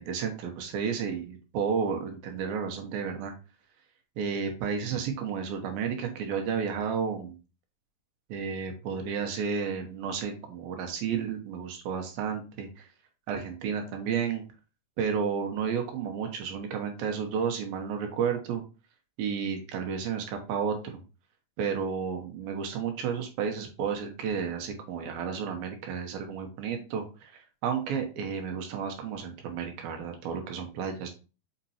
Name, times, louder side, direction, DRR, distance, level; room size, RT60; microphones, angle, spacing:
voice 1, 0.0-3.3 4.2-7.4 8.3-12.9 13.3-14.4 15.0-18.6 19.2-21.0 21.6-31.1, right 6 dB, 80° right, 4 dB, 2.9 m, -32 dB
6.7 x 5.2 x 2.8 m, 0.32 s
omnidirectional pair, 4.2 m